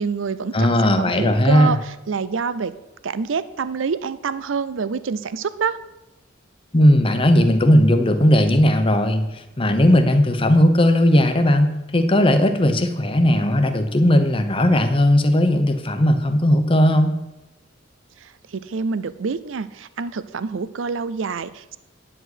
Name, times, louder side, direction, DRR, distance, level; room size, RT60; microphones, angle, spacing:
voice 1, 0.0-2.8 3.0-5.8 18.2-21.8, right 5 dB, 85° right, 15 dB, 0.5 m, -27 dB
voice 2, 0.5-1.7 6.7-17.1, left 1 dB, 30° left, 8 dB, 0.8 m, -17 dB
9.8 x 4.9 x 7.9 m, 0.98 s
head